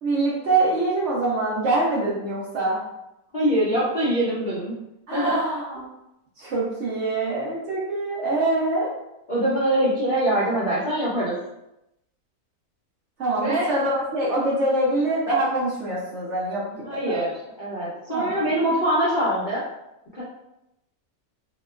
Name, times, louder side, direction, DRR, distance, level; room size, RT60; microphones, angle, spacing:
voice 1, 0.0-2.8 5.1-5.9 6.4-8.9 13.2-17.3 18.1-18.5, right 2 dB, 60° right, -5 dB, 0.8 m, -24 dB
voice 2, 3.3-4.7 5.1-5.4 9.3-11.3 13.4-13.7 16.8-17.3 17.6-19.6 20.2-20.3, right 1 dB, 50° left, -10 dB, 0.6 m, -23 dB
2.9 x 2.1 x 2.3 m, 0.89 s
omnidirectional pair, 1.6 m